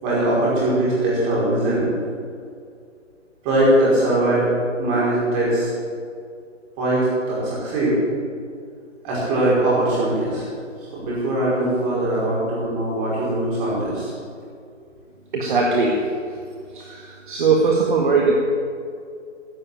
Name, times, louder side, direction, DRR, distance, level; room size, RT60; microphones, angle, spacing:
voice 1, 0.0-1.9 3.4-4.5 4.8-5.7 6.8-8.0 9.0-10.5 10.9-14.1, right 1 dB, 20° right, -6 dB, 5.2 m, -21 dB
voice 2, 15.3-16.1 16.8-18.3, right 4 dB, 40° right, -1 dB, 1.9 m, -20 dB
15.5 x 7.7 x 10.0 m, 2.3 s
figure-of-eight pair, 160°, 38 cm